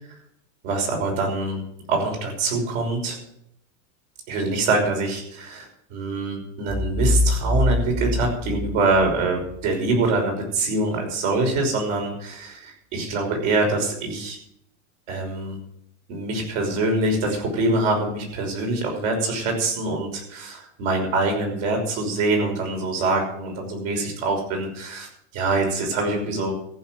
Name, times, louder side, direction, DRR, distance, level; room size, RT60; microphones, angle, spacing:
voice 1, 0.6-1.6 1.9-3.2 4.3-14.4 15.1-15.6 16.1-26.5, right 2 dB, 55° right, 2 dB, 5.8 m, -24 dB
sound 1, 6.7-9.6, left 2 dB, 30° right, 2.7 m, -24 dB
14.5 x 6.6 x 9.2 m, 0.74 s
supercardioid pair, 150°, 43 cm